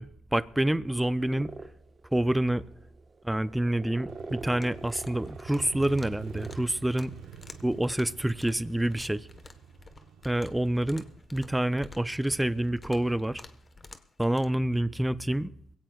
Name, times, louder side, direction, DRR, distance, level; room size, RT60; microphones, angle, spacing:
voice 1, 0.0-1.5 2.1-2.6 3.2-7.1 7.6-9.3 10.2-11.0 11.3-13.4 14.2-15.5, right 1 dB, 5° right, 0.5 m, -27 dB
sound 1, 0.9-7.3, right 3 dB, 30° right, 1.2 m, -44 dB
Motorcycle, 4.1-11.7, right 9 dB, 85° right, 1.1 m, -47 dB
sound 2, 4.6-14.5, left 3 dB, 30° left, 1.3 m, -51 dB
22.0 x 17.0 x 2.4 m
cardioid pair, 90°, 0 cm